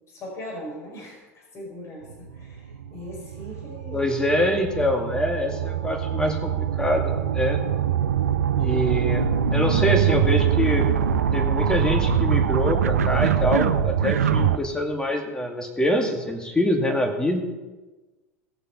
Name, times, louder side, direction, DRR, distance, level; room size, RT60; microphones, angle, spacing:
voice 1, 0.1-4.1, left 1 dB, 35° left, -1 dB, 4.6 m, -39 dB
sound 1, 2.1-14.6, right 8 dB, 80° right, 0.6 m, -23 dB
voice 2, 3.9-7.6 8.6-9.3 9.5-10.9 11.3-17.4, left 1 dB, 10° left, 3 dB, 2.2 m, -25 dB
18.0 x 6.7 x 5.4 m, 1.2 s
figure-of-eight pair, 80°, 8 cm